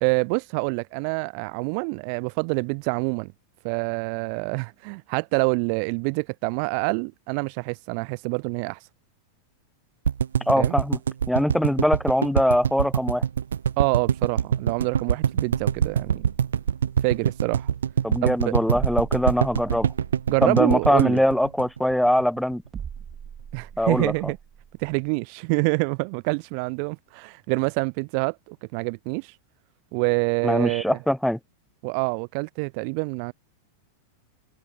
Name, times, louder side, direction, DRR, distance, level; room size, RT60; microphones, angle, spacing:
voice 1, 0.0-3.3 3.6-8.8 10.5-10.8 13.8-16.3 17.0-17.7 18.2-18.5 20.3-21.2 23.5-24.4 24.8-29.3 29.9-31.0 31.8-33.3, right 40 dB or more, 45° right, 0.6 m, -26 dB
sound 1, 10.0-22.2 22.5-22.6 22.8-22.9, right 8 dB, 65° right, 1.1 m, -24 dB
voice 2, 10.5-11.0 11.3-13.2 18.0-19.9 20.4-22.6 23.8-24.1 30.4-31.4, left 1 dB, ahead, 0.8 m, -22 dB
sound 2, 22.7-25.1, right 7 dB, 20° right, 4.9 m, -43 dB
figure-of-eight pair, 90°, 0 cm